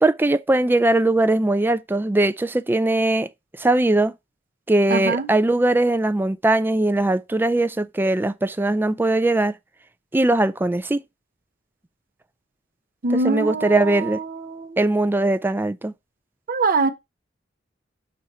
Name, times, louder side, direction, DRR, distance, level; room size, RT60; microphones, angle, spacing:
voice 1, 0.0-3.3 3.6-4.1 4.7-9.5 10.1-11.0 13.2-14.2 14.8-15.9, right 2 dB, 10° right, 0.3 m, -20 dB
voice 2, 4.9-5.3 13.0-14.8 16.5-16.9, right 3 dB, 50° right, 0.8 m, -23 dB
6.2 x 2.9 x 5.3 m
head